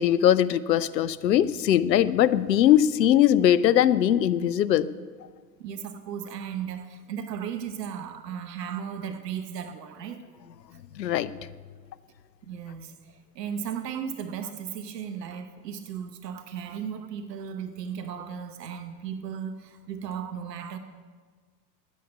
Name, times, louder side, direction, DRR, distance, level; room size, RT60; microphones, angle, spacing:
voice 1, 0.0-4.9 11.0-11.3, left 11 dB, 85° left, 17 dB, 0.6 m, -21 dB
voice 2, 5.6-10.2 10.7-10.8 12.4-20.8, right 8 dB, 75° right, 9 dB, 1.0 m, -36 dB
10.0 x 8.5 x 9.8 m, 1.5 s
hypercardioid pair, 85°, 49 cm